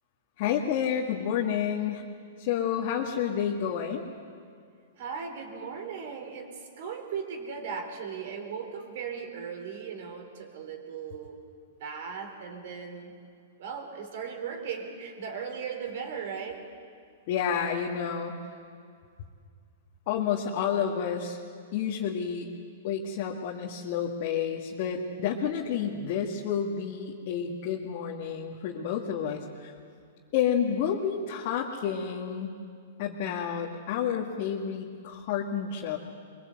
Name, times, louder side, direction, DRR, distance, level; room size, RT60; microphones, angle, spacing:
voice 1, 0.4-2.1 2.4-4.0 17.3-18.4 20.1-21.4 21.7-22.5 22.8-29.7 30.3-32.6 33.0-36.0, left 8 dB, 50° left, -1 dB, 1.9 m, -30 dB
voice 2, 5.0-11.4 11.8-13.1 13.6-16.7 25.6-26.1, right 6 dB, 60° right, 5 dB, 4.1 m, -37 dB
23.5 x 22.0 x 8.1 m, 2.2 s
hypercardioid pair, 115°, 0 cm